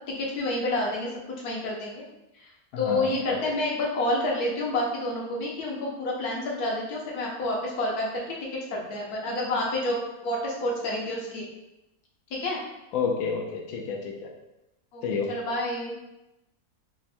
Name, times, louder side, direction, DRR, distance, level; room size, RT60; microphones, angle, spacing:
voice 1, 0.2-1.1 1.4-2.0 2.3-11.5 12.3-12.6 14.9-15.9, left 1 dB, 90° left, -2 dB, 1.3 m, -29 dB
voice 2, 2.8-3.4 12.9-14.1 15.0-15.3, left 5 dB, 70° left, 0 dB, 0.9 m, -29 dB
3.5 x 2.1 x 4.1 m, 0.94 s
omnidirectional pair, 1.6 m